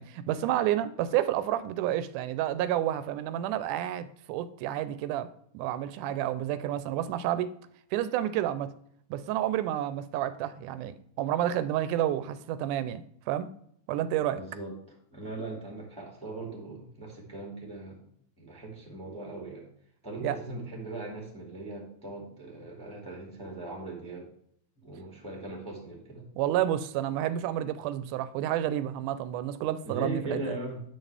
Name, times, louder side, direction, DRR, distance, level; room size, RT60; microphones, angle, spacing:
voice 1, 0.0-5.3 5.5-7.5 7.9-8.7 9.1-13.5 13.9-14.4 20.2-20.4 26.4-30.6, right 12 dB, 85° right, 2.0 m, -30 dB
voice 2, 14.3-14.7 15.1-18.0 18.4-19.6 20.0-24.3 24.8-26.3 29.8-30.8, right 2 dB, 5° left, 1.4 m, -39 dB
9.2 x 6.4 x 3.3 m
omnidirectional pair, 3.6 m